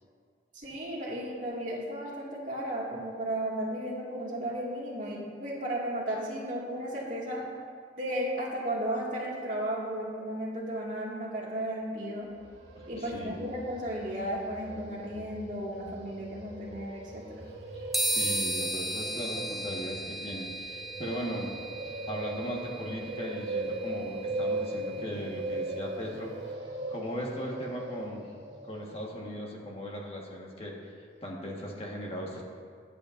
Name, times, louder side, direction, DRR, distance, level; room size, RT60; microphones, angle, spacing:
voice 1, 0.5-7.4 8.0-12.3 12.9-17.4, right 1 dB, 45° right, -4 dB, 2.1 m, -34 dB
sound 1, 12.2-29.2, right 2 dB, 80° right, 1.4 m, -39 dB
voice 2, 12.7-13.4 17.7-21.6 21.8-26.3 26.9-28.3 28.6-32.4, equal, 35° left, -2 dB, 1.5 m, -38 dB
sound 2, 17.9-25.6, right 1 dB, ahead, 0.5 m, -36 dB
22.5 x 8.4 x 2.6 m, 2.1 s
head